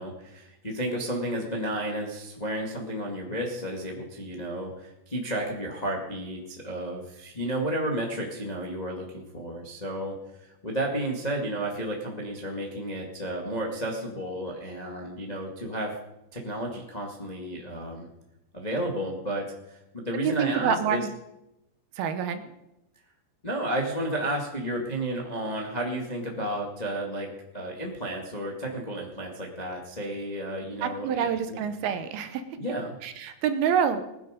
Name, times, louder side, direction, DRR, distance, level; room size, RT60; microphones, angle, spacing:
voice 1, 0.0-15.9 16.3-18.1 18.5-21.0 23.4-31.6 32.6-32.9, right 1 dB, 30° left, 0 dB, 0.7 m, -32 dB
voice 2, 20.2-21.1 22.0-22.4 30.8-32.4 33.0-34.0, right 8 dB, 75° right, 9 dB, 2.6 m, -27 dB
19.5 x 10.5 x 5.2 m, 0.89 s
omnidirectional pair, 4.8 m